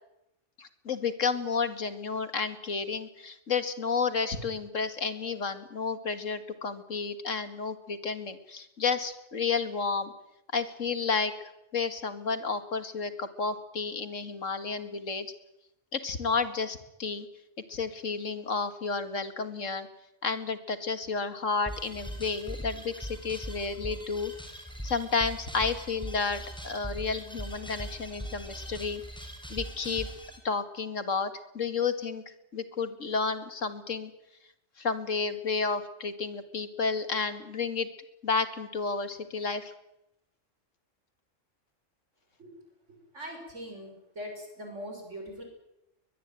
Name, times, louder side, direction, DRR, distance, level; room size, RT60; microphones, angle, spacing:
voice 1, 0.6-10.1 10.5-11.3 11.7-15.3 15.9-17.3 17.7-19.9 20.2-24.3 24.8-29.0 29.5-30.1 30.4-32.2 32.5-34.1 34.8-37.9 38.2-39.7, left 5 dB, 80° left, 10 dB, 2.4 m, -31 dB
sound 1, 21.7-30.4, equal, 5° left, 4.8 m, -40 dB
voice 2, 43.1-45.4, equal, 70° right, 3 dB, 6.6 m, -41 dB
22.0 x 21.0 x 9.2 m, 0.86 s
omnidirectional pair, 1.3 m